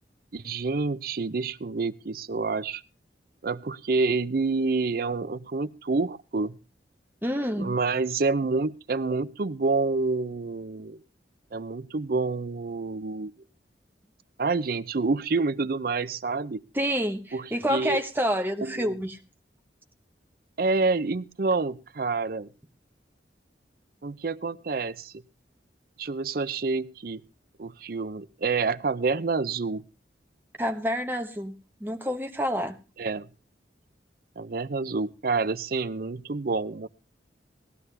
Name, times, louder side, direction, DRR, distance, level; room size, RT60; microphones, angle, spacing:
voice 1, 0.3-2.8 3.4-6.6 7.6-11.0 11.5-13.3 14.4-16.6 17.3-18.0 18.6-18.9 20.6-22.5 24.0-25.1 26.0-27.2 27.6-29.9 33.0-33.3 34.4-36.9, right 3 dB, 55° right, 16 dB, 0.6 m, -28 dB
voice 2, 7.2-7.7 16.7-19.2 30.6-32.8, equal, 10° right, 6 dB, 1.1 m, -28 dB
17.5 x 12.5 x 3.3 m, 0.30 s
head